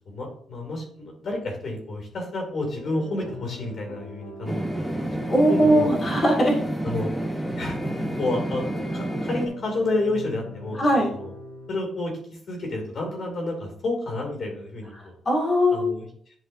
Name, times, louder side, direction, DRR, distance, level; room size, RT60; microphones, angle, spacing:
voice 1, 0.1-5.2 5.5-5.9 6.8-7.1 7.6-10.8 11.1-11.3 11.7-15.1 15.7-16.1, left 2 dB, 50° left, 2 dB, 2.7 m, -30 dB
sound 1, 2.7-11.7, left 1 dB, 85° left, 1.1 m, -41 dB
sound 2, 4.5-9.5, right 1 dB, 5° left, 1.1 m, -29 dB
voice 2, 5.3-6.5 10.8-11.1 15.0-15.9, equal, 30° left, -5 dB, 2.3 m, -20 dB
10.5 x 5.3 x 2.7 m, 0.62 s
cardioid pair, 135°, 0 cm